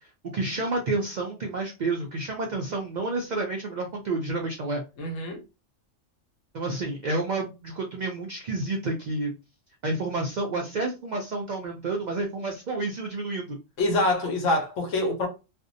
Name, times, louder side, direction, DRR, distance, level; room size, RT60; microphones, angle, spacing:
voice 1, 0.3-4.8 6.5-9.3 9.8-13.6, right 2 dB, 85° right, 0.4 m, -30 dB
voice 2, 5.0-5.4 13.8-15.3, left 2 dB, 75° left, 1.1 m, -25 dB
2.5 x 2.1 x 2.6 m
omnidirectional pair, 1.3 m